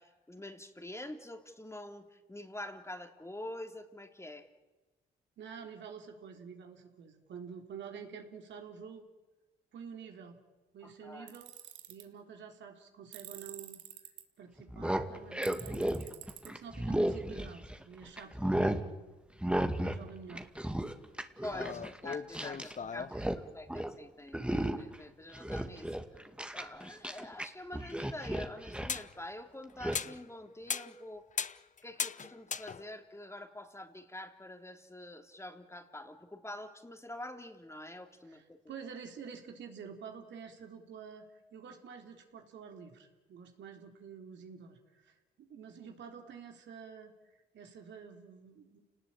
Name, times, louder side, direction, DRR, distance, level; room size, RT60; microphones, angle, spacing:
voice 1, 0.0-4.5 10.8-11.4 21.4-25.9 26.5-31.2 31.8-38.6, left 1 dB, 15° left, 5 dB, 3.2 m, -46 dB
voice 2, 5.4-9.1 9.7-10.4 10.7-11.5 11.9-13.8 14.4-16.0 16.4-19.0 19.7-20.5 21.6-21.8 22.5-23.3 38.3-48.8, right 6 dB, 75° right, 3 dB, 3.6 m, -49 dB
Tools, 11.3-12.0 13.1-14.2 15.4-16.5, right 13 dB, 90° right, 2.0 m, -48 dB
sound 1, 14.6-17.8 18.2-18.8 19.4-20.0 20.3-22.7 23.0-23.4 23.7-23.9 24.3-25.0 25.3-27.5 27.7-29.0 29.8-30.0, right 1 dB, 5° right, 2.2 m, -34 dB
sound 2, 21.5-23.2 27.9-28.0 28.9-29.1 29.7-30.3 30.7-31.0 31.3-33.1, left 6 dB, 40° left, 0.9 m, -38 dB
29.5 x 19.0 x 8.9 m, 1.2 s
supercardioid pair, 60°, 19 cm